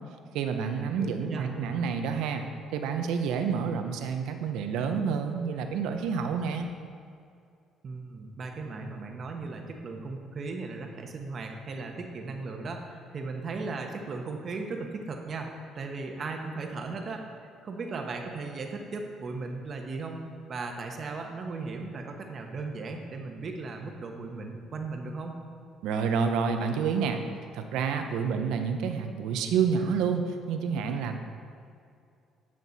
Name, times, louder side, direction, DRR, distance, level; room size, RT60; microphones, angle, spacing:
voice 1, 0.3-2.5 2.7-6.7 25.8-27.2 27.5-31.2, right 6 dB, 85° right, 6 dB, 0.7 m, -29 dB
voice 2, 0.9-1.6 7.8-15.5 15.7-17.3 17.6-25.4, right 3 dB, 45° right, 3 dB, 1.0 m, -37 dB
9.5 x 6.0 x 4.0 m, 2.4 s
cardioid pair, 100°, 0 cm